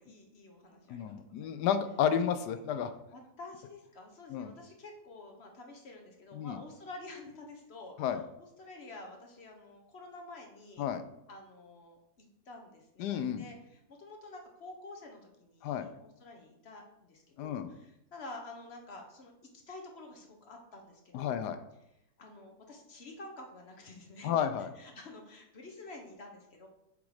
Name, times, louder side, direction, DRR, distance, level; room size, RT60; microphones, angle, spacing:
voice 1, 0.0-1.6 2.2-2.3 3.1-10.9 11.3-21.4 22.2-24.5 24.7-26.7, left 2 dB, 45° left, 2 dB, 1.1 m, -49 dB
voice 2, 0.9-2.9 4.3-4.5 6.3-6.6 8.0-8.2 10.8-11.0 13.0-13.5 15.6-15.9 17.4-17.7 21.1-21.6 24.2-24.7, left 8 dB, 85° left, 10 dB, 1.2 m, -31 dB
7.2 x 3.7 x 4.8 m, 0.85 s
omnidirectional pair, 1.7 m